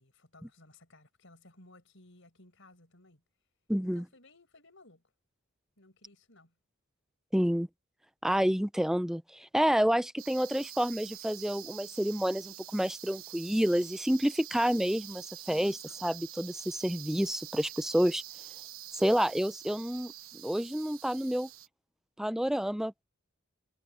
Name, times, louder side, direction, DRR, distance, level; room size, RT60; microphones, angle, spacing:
voice 1, 0.0-3.2 3.9-5.0 5.8-6.5 15.4-15.8, left 2 dB, 65° left, 6.5 m, -58 dB
voice 2, 3.7-4.0 7.3-7.7 8.2-18.2 19.0-21.5 22.2-23.0, equal, ahead, 0.4 m, -29 dB
sound 1, 10.2-21.7, right 13 dB, 80° right, 1.1 m, -46 dB
head